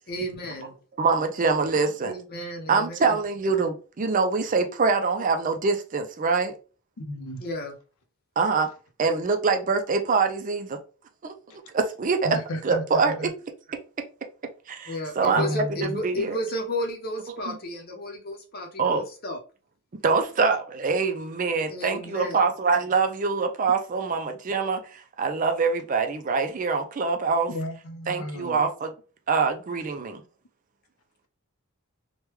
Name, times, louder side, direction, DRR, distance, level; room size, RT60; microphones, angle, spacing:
voice 1, 0.1-0.7 2.0-3.2 7.4-7.8 14.9-19.4 21.7-22.4, equal, 45° left, 0.8 m, -33 dB
voice 2, 1.0-2.1 2.7-6.5 8.4-8.7 9.0-10.8 11.2-11.3 11.7-12.4 12.6-13.3 14.7-15.6 15.9-16.4 17.3-17.6 18.8-19.0 20.0-27.5 28.1-28.9 29.3-30.2, right 4 dB, 40° right, 0.4 m, -24 dB
voice 3, 7.0-7.4 12.2-13.3 15.3-15.9 27.5-28.6, equal, 85° left, 0.6 m, -33 dB
3.3 x 2.2 x 3.0 m
head